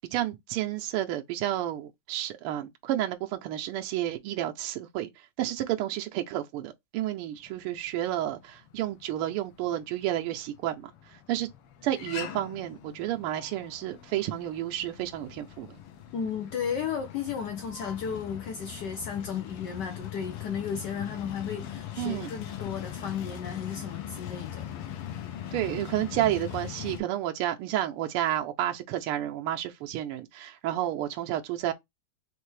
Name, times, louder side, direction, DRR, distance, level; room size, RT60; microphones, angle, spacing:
voice 1, 0.1-11.5 11.8-15.8 22.0-22.3 25.5-31.7, right 13 dB, 85° right, 1.5 m, -31 dB
sound 1, 7.5-27.0, left 10 dB, 85° left, 1.6 m, -41 dB
voice 2, 16.1-24.7, left 7 dB, 70° left, 1.1 m, -34 dB
4.4 x 3.3 x 3.2 m
omnidirectional pair, 2.4 m